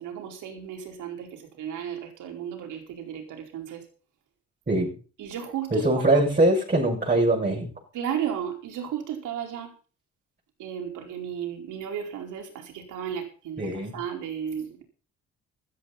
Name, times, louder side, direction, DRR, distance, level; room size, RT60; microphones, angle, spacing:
voice 1, 0.0-3.8 5.2-6.0 7.9-9.7 10.6-14.8, right 9 dB, 85° right, 2 dB, 4.9 m, -34 dB
voice 2, 5.7-7.7 13.6-13.9, right 1 dB, 30° right, -2 dB, 6.9 m, -22 dB
15.5 x 13.5 x 4.3 m, 0.39 s
cardioid pair, 90°, 30 cm